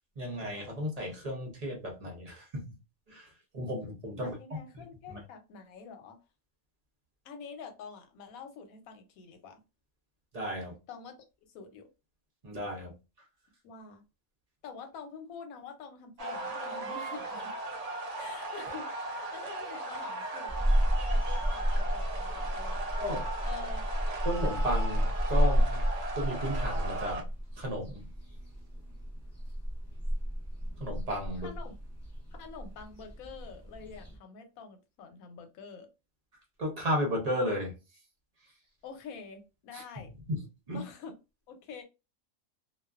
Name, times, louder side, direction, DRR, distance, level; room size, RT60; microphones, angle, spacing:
voice 1, 0.2-2.7 3.1-4.3 4.7-4.8 5.1-5.2 10.3-10.8 12.4-12.9 23.0-23.3 24.2-25.9 26.1-27.3 27.5-28.1 30.8-31.5 36.6-37.8 39.7-40.0 40.3-40.8, equal, 40° right, 0.6 m, -34 dB
voice 2, 4.2-6.2 7.2-9.6 10.9-11.3 11.5-11.9 13.6-14.0 14.6-17.6 18.2-23.0 23.4-23.8 31.4-31.7 32.4-35.9 38.8-40.1 40.7-41.1 41.5-41.8, left 5 dB, 85° left, 1.1 m, -47 dB
sound 1, 16.2-27.2, right 2 dB, 90° right, 0.3 m, -38 dB
sound 2, 20.5-34.2, equal, 15° left, 0.8 m, -31 dB
2.4 x 2.2 x 2.3 m
omnidirectional pair, 1.4 m